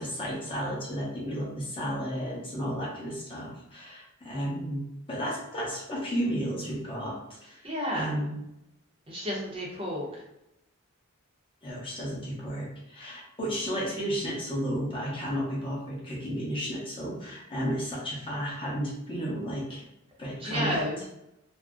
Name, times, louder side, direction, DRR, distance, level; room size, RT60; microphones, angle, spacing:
voice 1, 0.0-7.7 7.9-8.4 11.6-19.8 20.2-20.8, equal, 25° left, -5 dB, 0.8 m, -33 dB
voice 2, 7.6-8.1 9.1-10.2 20.4-21.0, equal, 25° right, -4 dB, 0.7 m, -31 dB
2.4 x 2.0 x 3.5 m, 0.85 s
head